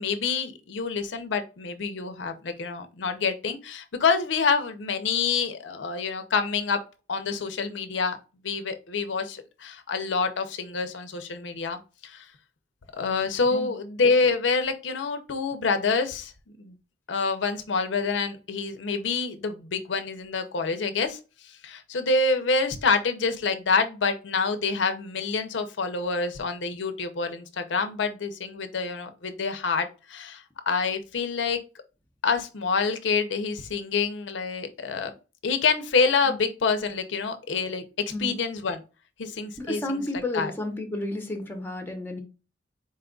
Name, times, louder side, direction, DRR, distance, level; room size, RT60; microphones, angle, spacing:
voice 1, 0.0-6.8 7.1-8.2 8.4-12.3 13.0-16.3 16.6-16.7 17.1-21.2 21.6-31.6 32.2-35.1 35.4-37.8 38.2-38.8 39.2-40.5, left 4 dB, 75° left, 8 dB, 0.6 m, -27 dB
voice 2, 39.7-42.2, left 1 dB, 10° left, 4 dB, 0.8 m, -31 dB
4.3 x 2.3 x 3.7 m, 0.32 s
head